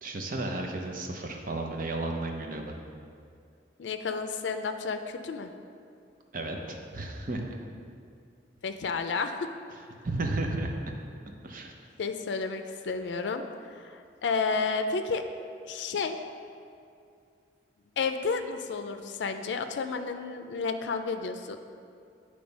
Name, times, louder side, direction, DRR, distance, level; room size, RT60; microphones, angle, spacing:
voice 1, 0.0-2.8 6.3-7.5 10.0-10.9 11.4-11.7, right 2 dB, 50° right, 2 dB, 0.7 m, -33 dB
voice 2, 3.8-5.5 8.6-9.5 12.0-13.4 13.7-15.2 15.7-16.2 18.0-21.6, left 4 dB, 85° left, 7 dB, 0.4 m, -31 dB
8.7 x 3.3 x 5.2 m, 2.3 s
head